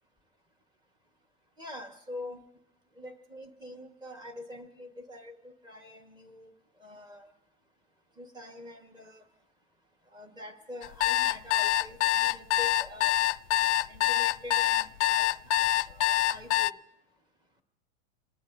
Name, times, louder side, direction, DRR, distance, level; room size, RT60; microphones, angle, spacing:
voice 1, 1.6-2.4 3.0-6.5 6.8-7.3 8.2-9.2 10.1-13.2 13.9-16.8, left 1 dB, 15° right, 5 dB, 1.5 m, -45 dB
sound 1, 10.8-16.7, left 15 dB, 85° left, 0.5 m, -25 dB
27.0 x 19.5 x 2.7 m, 0.87 s
supercardioid pair, 155°, 34 cm